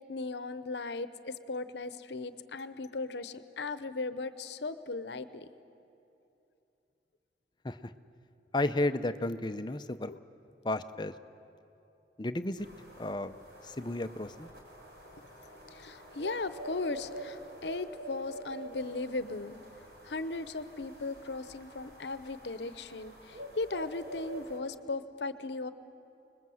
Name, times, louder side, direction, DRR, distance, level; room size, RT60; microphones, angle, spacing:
voice 1, 0.0-5.5 10.1-10.2 15.7-19.6 20.0-25.7, left 3 dB, 75° left, 13 dB, 0.8 m, -37 dB
voice 2, 8.5-10.1 10.6-11.1 12.2-12.7 13.0-13.4 13.6-14.5, left 2 dB, 25° left, 10 dB, 0.6 m, -33 dB
sound 1, 12.6-24.6, right 1 dB, 60° right, 4.6 m, -47 dB
26.0 x 21.0 x 7.8 m, 2.9 s
head